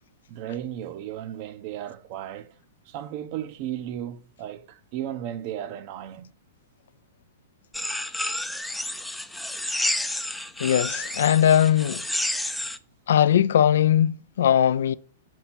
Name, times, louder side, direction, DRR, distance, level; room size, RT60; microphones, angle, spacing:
voice 1, 0.3-2.5 2.9-6.3, right 11 dB, 50° right, 0.6 m, -35 dB
sound 1, 7.7-12.8, left 1 dB, 5° left, 0.4 m, -30 dB
voice 2, 10.6-12.0 13.1-14.9, left 10 dB, 70° left, 0.3 m, -20 dB
5.8 x 4.6 x 5.7 m
hypercardioid pair, 120°, 0 cm